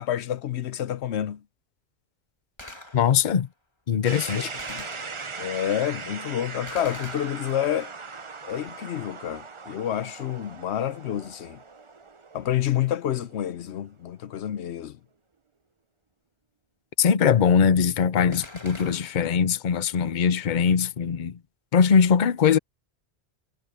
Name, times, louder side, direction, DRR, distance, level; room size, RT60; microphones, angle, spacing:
voice 1, 0.0-1.4 4.3-4.9 5.4-7.9 8.4-11.6 12.3-15.0, left 11 dB, 90° left, 1.0 m, -29 dB
Gunshot gunfire, 2.6-3.4 4.6-5.6 6.7-7.9 18.3-19.4, left 1 dB, 25° left, 2.7 m, -44 dB
voice 2, 2.9-3.5 3.9-4.5 17.0-21.4 21.7-22.6, left 7 dB, 50° left, 0.8 m, -21 dB
sound 1, 4.0-13.9, right 4 dB, 30° right, 0.8 m, -39 dB
omnidirectional pair, 1.1 m